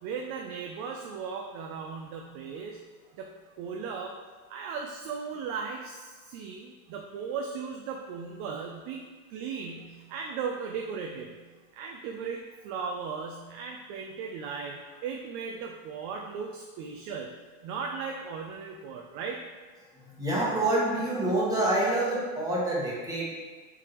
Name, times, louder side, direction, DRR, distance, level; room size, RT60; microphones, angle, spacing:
voice 1, 0.0-2.8 3.1-4.2 4.5-11.4 11.7-17.4 17.6-19.4, right 5 dB, 50° right, 1 dB, 0.4 m, -37 dB
voice 2, 20.0-23.3, right 1 dB, 10° right, -7 dB, 1.1 m, -27 dB
4.9 x 3.5 x 3.0 m, 1.4 s
supercardioid pair, 130°, 46 cm